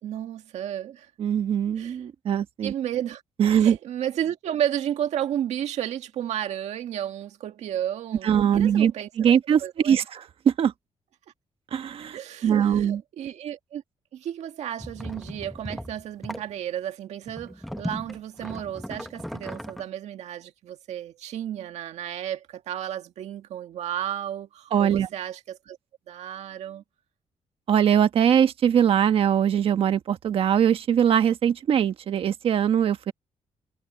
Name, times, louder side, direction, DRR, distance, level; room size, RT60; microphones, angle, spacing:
voice 1, 0.0-1.1 1.8-2.0 2.6-3.2 3.5-9.3 9.6-10.0 12.1-13.8 14.1-25.8 26.1-26.8, right 10 dB, 80° right, 1.9 m, -32 dB
voice 2, 1.2-2.7 3.4-3.8 8.2-8.9 9.2-10.7 11.7-13.0 24.7-25.1 27.7-33.1, right 9 dB, 55° right, 1.3 m, -22 dB
sound 1, 14.8-16.5 17.3-19.8, equal, ahead, 0.9 m, -37 dB
wide cardioid pair, 170°, 11 cm